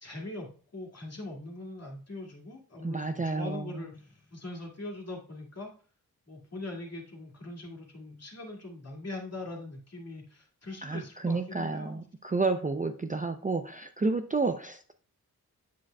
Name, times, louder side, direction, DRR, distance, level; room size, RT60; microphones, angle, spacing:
voice 1, 0.0-5.7 6.3-12.0, left 2 dB, 45° left, -1 dB, 2.2 m, -42 dB
voice 2, 2.8-3.7 10.8-14.9, right 3 dB, 20° right, 7 dB, 0.4 m, -30 dB
7.4 x 6.3 x 2.2 m, 0.40 s
cardioid pair, 55°, 37 cm